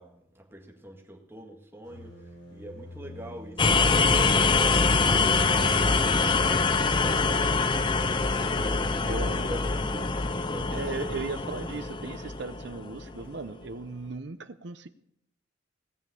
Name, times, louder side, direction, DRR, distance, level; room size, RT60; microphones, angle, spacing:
voice 1, 0.0-10.8 13.1-13.3, equal, 10° right, 0 dB, 1.8 m, -43 dB
sound 1, 1.9-7.8, left 2 dB, 60° left, 3.8 m, -41 dB
sound 2, 3.6-13.3, left 4 dB, 25° left, 0.5 m, -24 dB
voice 2, 9.0-9.6 10.7-14.9, right 3 dB, 60° right, 10 dB, 0.7 m, -37 dB
18.0 x 7.3 x 6.8 m, 0.76 s
head